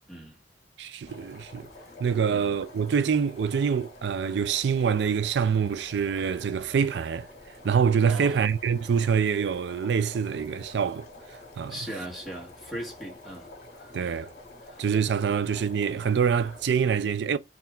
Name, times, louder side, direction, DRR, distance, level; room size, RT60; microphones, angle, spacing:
voice 1, 0.1-0.4 2.3-2.6 8.0-8.5 11.7-14.2 14.6-14.8 15.3-15.4, right 1 dB, ahead, 1.9 m, -40 dB
voice 2, 0.8-1.7 2.0-7.3 7.6-11.7 13.9-14.3 14.8-17.4, right 6 dB, 75° right, 0.4 m, -25 dB
sound 1, 1.1-16.6, left 2 dB, 45° left, 1.8 m, -48 dB
4.6 x 2.9 x 3.7 m
head